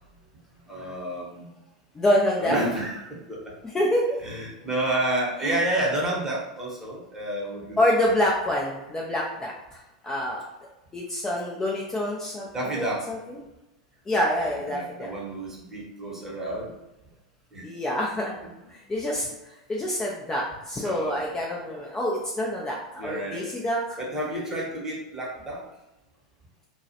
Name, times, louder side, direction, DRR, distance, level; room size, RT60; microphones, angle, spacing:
voice 1, 0.7-1.5 2.4-3.4 4.2-7.8 12.5-13.1 14.7-16.7 17.5-17.7 20.8-21.2 23.0-23.5 24.0-25.6, right 1 dB, 15° right, -4 dB, 0.9 m, -30 dB
voice 2, 1.9-2.6 3.7-4.2 5.4-5.6 7.8-10.4 10.9-12.5 12.7-13.4 14.1-15.1 17.6-18.4 18.7-23.8, left 1 dB, 15° left, -3 dB, 0.4 m, -26 dB
2.2 x 2.0 x 2.7 m, 0.98 s
hypercardioid pair, 95°, 3 cm